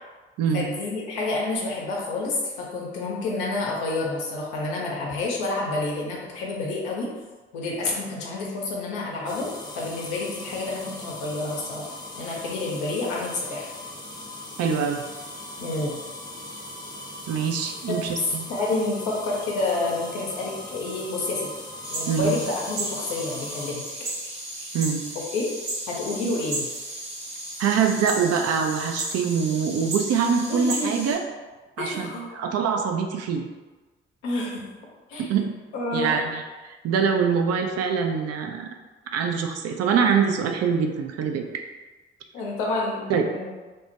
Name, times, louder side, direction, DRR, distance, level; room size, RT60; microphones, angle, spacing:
voice 1, 0.5-7.1 7.5-9.5 9.8-11.9 12.2-13.7 15.6-16.0 17.9-18.0 18.5-21.5 21.9-23.9 25.1-25.5 25.9-26.7 30.5-30.9 31.8-32.3 34.2-34.6 35.1-35.3 35.7-36.2 42.3-43.5, left 2 dB, 80° left, -3 dB, 0.7 m, -29 dB
sound 1, 9.3-23.7, left 1 dB, 15° left, 0.7 m, -39 dB
voice 2, 14.6-15.0 17.3-18.5 22.1-22.4 24.7-25.0 27.6-31.2 31.8-33.4 35.2-35.5 35.9-36.4 36.8-38.7 39.1-41.6 43.1-43.3, right 6 dB, 55° right, 4 dB, 0.5 m, -24 dB
sound 2, 21.8-31.1, right 1 dB, 80° right, 0.8 m, -34 dB
3.3 x 2.1 x 2.7 m, 1.3 s
hypercardioid pair, 45°, 31 cm